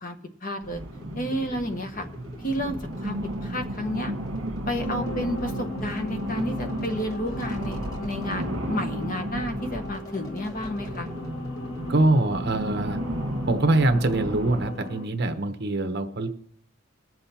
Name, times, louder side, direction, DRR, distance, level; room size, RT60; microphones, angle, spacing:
voice 1, 0.4-0.8 1.1-2.1 2.4-4.1 4.7-11.1, equal, 40° left, 5 dB, 1.2 m, -31 dB
sound 1, 0.6-14.7, right 1 dB, 70° right, 1.5 m, -34 dB
sound 2, 0.9-12.1, left 1 dB, 20° left, 1.7 m, -44 dB
sound 3, 4.8-15.1, left 2 dB, 80° left, 1.6 m, -38 dB
voice 2, 11.9-13.0 13.5-16.3, right 2 dB, 55° right, 7 dB, 1.1 m, -23 dB
21.5 x 7.6 x 4.3 m, 0.68 s
head